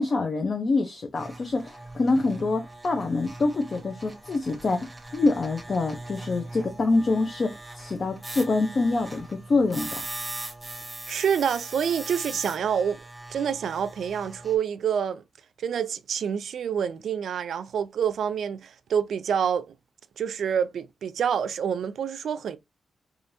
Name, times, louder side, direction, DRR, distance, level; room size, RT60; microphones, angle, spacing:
voice 1, 0.0-10.0, left 3 dB, 45° left, 0.6 m, -26 dB
sound 1, 1.1-14.6, right 2 dB, 15° right, 1.1 m, -40 dB
voice 2, 11.1-13.0 13.3-15.2 15.6-19.7 20.2-22.6, right 8 dB, 80° right, 0.4 m, -27 dB
4.9 x 2.5 x 2.6 m
wide cardioid pair, 120°, 0 cm